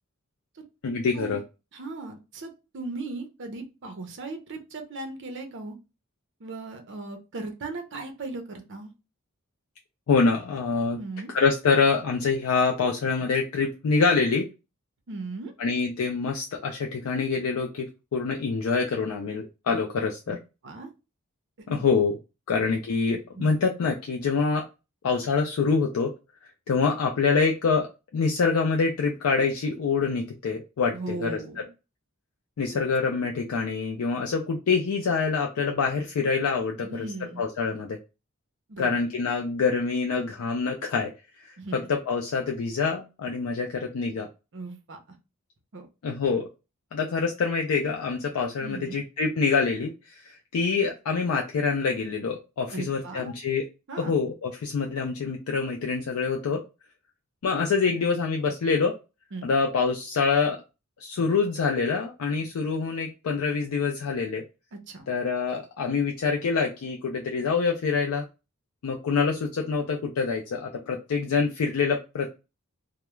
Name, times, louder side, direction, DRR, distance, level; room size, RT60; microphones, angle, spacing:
voice 1, 0.8-1.4 10.1-11.0 11.3-14.5 15.6-17.9 18.1-20.4 21.7-22.2 22.5-24.6 25.0-26.1 26.7-31.6 32.6-37.1 37.4-38.0 38.8-41.1 41.4-44.3 46.0-46.5 46.9-53.6 54.0-56.6 57.4-59.0 59.4-60.6 61.0-64.4 65.1-68.3 68.8-72.3, left 5 dB, 80° left, 1 dB, 0.4 m, -26 dB
voice 2, 1.7-5.7 6.4-8.9 10.9-11.3 15.1-15.5 20.6-20.9 21.7-21.8 23.4-23.5 30.9-31.7 36.8-37.4 38.7-38.9 41.6-41.8 44.5-45.0 45.7-45.9 48.6-49.0 52.7-53.3 53.9-54.2 59.3-59.4 64.7-65.0, right 3 dB, 55° right, 5 dB, 0.6 m, -37 dB
2.3 x 2.0 x 3.0 m, 0.28 s
head